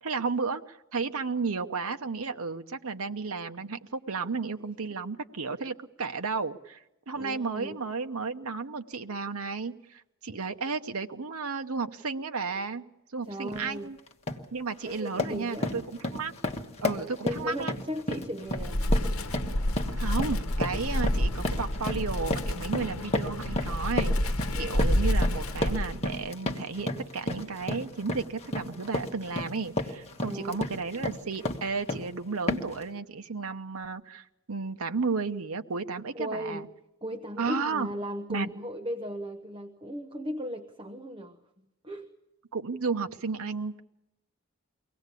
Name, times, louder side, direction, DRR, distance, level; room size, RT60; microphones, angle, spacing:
voice 1, 0.0-12.8 13.1-14.0 14.5-16.3 16.8-17.7 18.1-18.2 19.9-36.7 37.4-37.9 38.3-38.5 42.5-43.8, right 4 dB, 80° right, 7 dB, 0.9 m, -33 dB
voice 2, 7.2-7.8 13.2-13.9 14.8-15.8 17.2-18.9 24.5-24.9 30.3-30.6 36.1-36.7 37.0-41.4 41.8-42.2, equal, 25° right, 8 dB, 0.9 m, -37 dB
sound 1, 13.5-13.7 14.1-14.5 14.8-32.1 32.5-32.8, left 1 dB, 30° left, 1.5 m, -33 dB
Wind, 18.5-26.2, left 1 dB, 70° left, 1.1 m, -29 dB
23.5 x 17.5 x 8.3 m, 0.91 s
head